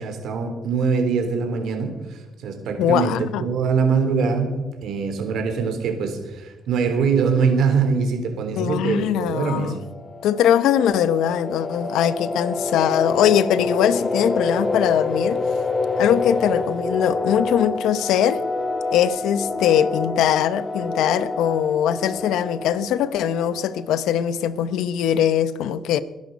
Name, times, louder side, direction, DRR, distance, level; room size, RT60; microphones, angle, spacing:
voice 1, 0.0-4.6 4.8-9.7, right 5 dB, 75° right, 3.5 m, -23 dB
voice 2, 2.8-3.4 8.6-9.8 10.2-15.4 16.0-18.4 18.9-26.0, left 10 dB, 85° left, 0.8 m, -21 dB
sound 1, 9.6-24.2, left 3 dB, 20° left, 2.4 m, -27 dB
22.0 x 10.5 x 5.3 m
cardioid pair, 90°, 0 cm